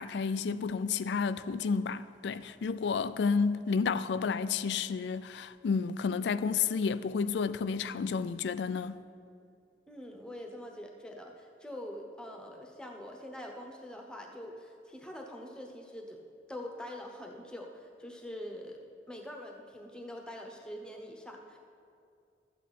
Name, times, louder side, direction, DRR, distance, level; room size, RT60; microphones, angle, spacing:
voice 1, 0.0-9.0, left 5 dB, 70° left, 0.3 m, -31 dB
voice 2, 9.9-16.2 16.5-18.8 19.1-21.6, left 1 dB, 5° left, 0.9 m, -44 dB
13.0 x 8.3 x 4.2 m
head